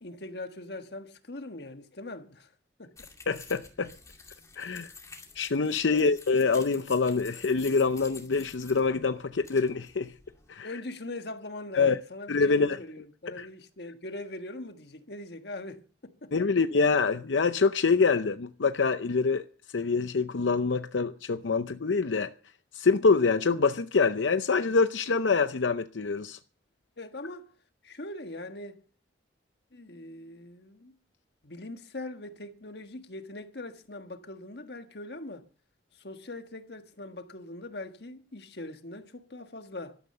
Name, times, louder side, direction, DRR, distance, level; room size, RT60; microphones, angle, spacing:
voice 1, 0.0-2.5 2.8-3.1 5.9-6.2 10.6-16.3 27.0-27.5 27.8-28.8 29.7-31.0 31.4-35.5 35.9-40.0, left 2 dB, 65° left, 1.5 m, -41 dB
sound 1, 3.0-10.5, left 4 dB, 15° left, 2.4 m, -50 dB
voice 2, 3.3-3.9 4.6-4.9 5.3-10.1 10.5-10.7 11.7-12.0 12.3-12.8 13.4-13.5 16.3-19.4 19.7-22.3 22.7-26.4, left 4 dB, 90° left, 0.7 m, -25 dB
13.0 x 12.5 x 6.6 m
head